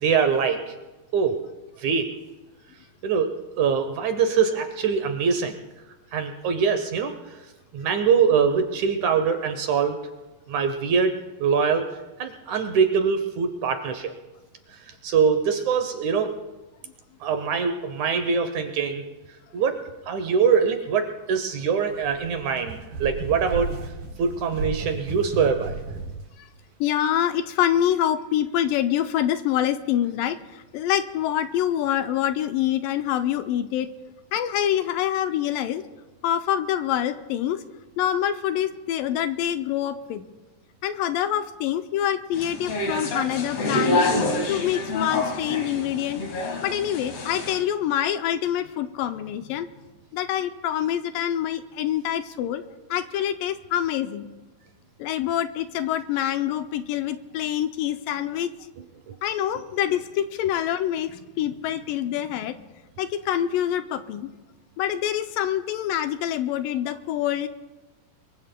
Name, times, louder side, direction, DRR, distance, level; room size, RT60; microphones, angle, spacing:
voice 1, 0.0-0.7 1.1-1.4 1.8-2.1 3.0-3.3 3.6-5.6 6.1-7.4 7.7-10.0 10.5-11.1 11.4-14.1 15.0-16.4 17.2-19.0 19.5-23.8 24.2-25.8 59.1-59.2, right 6 dB, 70° right, 7 dB, 2.0 m, -23 dB
sound 1, 21.9-26.2, right 3 dB, 90° right, 4.9 m, -33 dB
voice 2, 26.8-33.9 34.3-35.8 36.2-37.6 38.0-40.2 40.8-44.1 44.5-46.3 46.6-49.7 50.1-52.6 52.9-54.3 55.0-58.5 59.2-62.6 63.0-64.3 64.8-67.5, left 11 dB, 80° left, 9 dB, 2.2 m, -26 dB
sound 2, 42.3-47.6, left 2 dB, 50° left, 2.5 m, -27 dB
24.0 x 22.5 x 2.2 m, 1.2 s
omnidirectional pair, 4.1 m